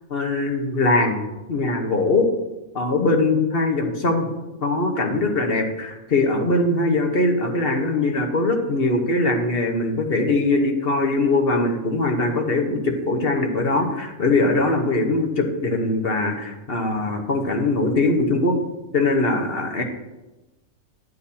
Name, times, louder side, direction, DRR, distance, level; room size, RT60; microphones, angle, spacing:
voice 1, 0.1-1.2 1.5-2.3 2.7-4.3 4.6-18.6 18.9-19.8, left 2 dB, 45° left, 3 dB, 1.2 m, -21 dB
9.9 x 9.5 x 2.8 m, 1.0 s
omnidirectional pair, 1.5 m